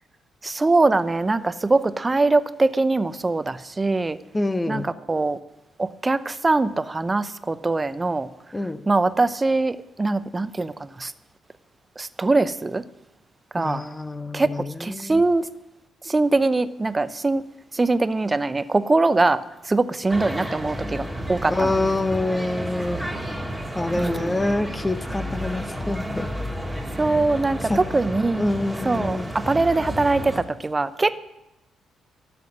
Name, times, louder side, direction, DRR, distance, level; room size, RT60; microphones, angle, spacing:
voice 1, 0.4-4.2 4.7-5.4 5.8-8.3 8.9-11.1 12.0-12.8 13.5-13.8 14.3-14.5 14.8-15.5 16.0-17.4 17.7-21.7 24.0-24.4 27.0-28.4 28.8-31.2, right 3 dB, 25° right, 15 dB, 0.7 m, -22 dB
voice 2, 4.3-4.9 8.5-8.8 13.6-15.2 21.5-23.0 23.8-26.3 27.7-28.0 28.4-29.3, left 2 dB, 20° left, 12 dB, 0.8 m, -26 dB
sound 1, 20.1-30.4, equal, 5° right, 1.9 m, -31 dB
13.5 x 6.0 x 9.6 m, 0.91 s
figure-of-eight pair, 40°, 0 cm